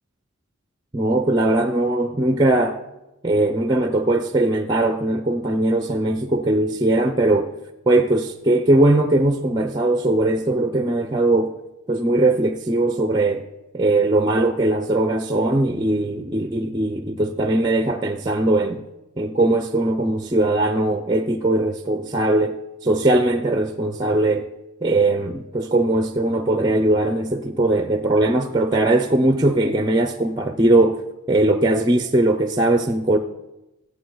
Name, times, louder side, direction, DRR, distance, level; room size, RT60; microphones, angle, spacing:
voice 1, 0.9-2.8 3.2-7.5 7.9-11.5 11.9-13.5 13.7-18.8 19.2-22.6 22.8-24.5 24.8-31.0 31.3-33.2, right 2 dB, 20° right, 0.5 m, -20 dB
14.0 x 8.3 x 3.9 m
head